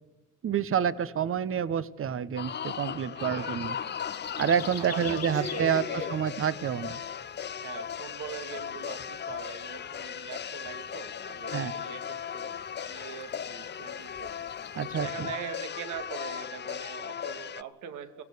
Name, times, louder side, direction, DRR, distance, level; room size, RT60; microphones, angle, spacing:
voice 1, 0.4-3.8 4.4-7.0 11.5-11.8 14.7-15.3, right 8 dB, 45° right, 17 dB, 1.0 m, -28 dB
sound 1, 2.4-17.6, left 8 dB, 35° left, 0.6 m, -37 dB
voice 2, 3.2-4.1 4.8-6.2 7.5-14.5 15.0-18.2, right 8 dB, 80° right, 9 dB, 2.1 m, -42 dB
sound 2, 3.6-15.0, left 8 dB, 55° left, 1.7 m, -48 dB
23.5 x 16.5 x 6.8 m, 1.2 s
cardioid pair, 90°, 30 cm